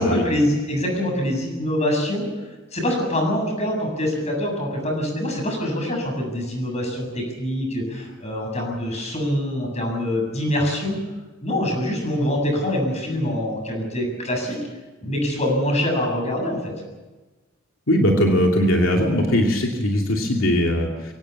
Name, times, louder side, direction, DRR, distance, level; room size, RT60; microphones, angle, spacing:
voice 1, 0.0-2.3 2.7-11.0 11.4-14.6 15.0-16.7, left 1 dB, 35° left, 2 dB, 7.7 m, -24 dB
voice 2, 17.9-21.1, equal, 85° left, 1 dB, 2.7 m, -20 dB
24.5 x 17.0 x 8.5 m, 1.2 s
head